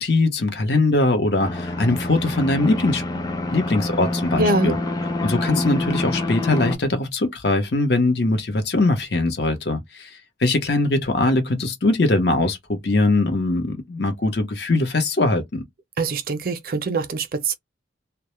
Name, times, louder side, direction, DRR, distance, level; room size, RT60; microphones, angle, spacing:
voice 1, 0.0-3.2 3.5-4.8 5.2-15.6, left 2 dB, 60° left, 0.7 m, -21 dB
sound 1, 1.4-6.8, left 2 dB, 20° left, 0.4 m, -26 dB
voice 2, 4.4-4.8 16.0-17.5, right 3 dB, 50° right, 0.4 m, -23 dB
2.2 x 2.0 x 2.9 m
head